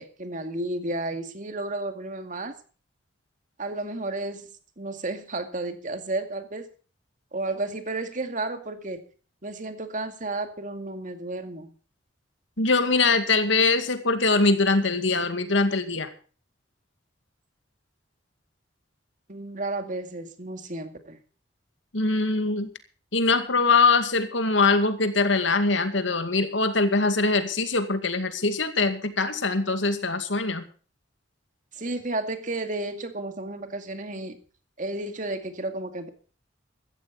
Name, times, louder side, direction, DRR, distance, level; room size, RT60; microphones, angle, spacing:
voice 1, 0.0-2.6 3.6-4.4 4.8-6.7 7.3-9.0 9.4-11.7 19.3-21.2 31.7-34.4 34.8-36.1, right 2 dB, 45° right, 7 dB, 2.2 m, -32 dB
voice 2, 12.6-16.1 21.9-22.7 23.1-30.6, left 3 dB, 80° left, 9 dB, 2.2 m, -23 dB
15.5 x 14.0 x 4.1 m, 0.39 s
head